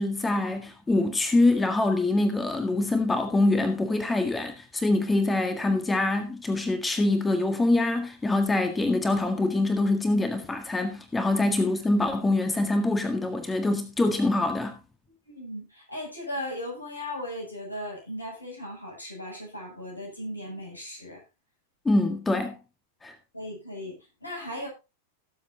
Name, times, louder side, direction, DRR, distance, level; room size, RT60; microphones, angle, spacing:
voice 1, 0.0-14.8 21.9-22.6 23.0-23.1, left 2 dB, 10° left, 1.7 m, -24 dB
voice 2, 15.3-21.2 23.3-24.7, left 1 dB, 80° left, 7.0 m, -37 dB
18.0 x 7.7 x 2.8 m
figure-of-eight pair, 90°, 0 cm